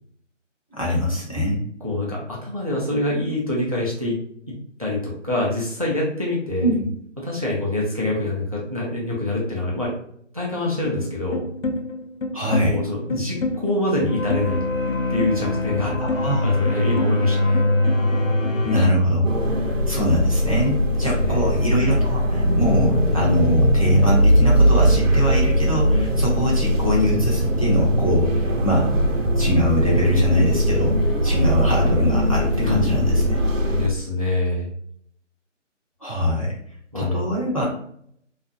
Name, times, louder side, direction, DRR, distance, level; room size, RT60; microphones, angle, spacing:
voice 1, 0.7-1.6 6.6-6.9 12.3-12.8 16.0-16.5 16.7-16.9 18.6-19.3 19.9-28.9 29.4-33.4 36.0-36.5 36.9-37.6, equal, 30° left, -5 dB, 0.5 m, -23 dB
voice 2, 1.8-4.2 4.8-6.7 7.2-9.9 10.3-11.4 12.7-14.6 15.1-16.0 16.4-17.6 21.2-21.5 32.6-33.4 33.7-34.7 36.9-37.3, left 2 dB, 30° right, -4 dB, 0.4 m, -25 dB
sound 1, 10.8-18.9, left 2 dB, 90° left, 0.6 m, -23 dB
sound 2, 19.2-33.9, equal, 85° right, 0.7 m, -20 dB
2.4 x 2.1 x 2.5 m, 0.66 s
figure-of-eight pair, 155°, 38 cm